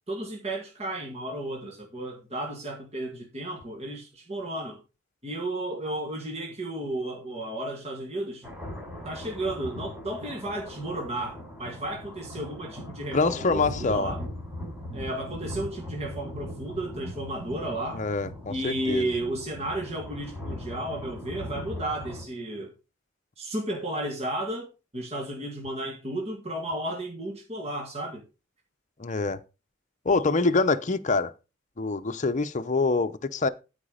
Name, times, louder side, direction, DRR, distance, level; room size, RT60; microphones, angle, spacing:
voice 1, 0.1-4.8 5.2-8.5 9.0-14.2 14.9-18.0 18.5-22.7 23.4-28.2, right 1 dB, 35° right, 2.1 m, -33 dB
sound 1, 8.4-22.2, equal, 5° right, 4.7 m, -39 dB
voice 2, 13.1-14.1 17.9-19.1 29.0-29.4 30.0-31.3 31.8-33.5, left 3 dB, 40° left, 0.7 m, -25 dB
13.0 x 5.0 x 5.0 m
head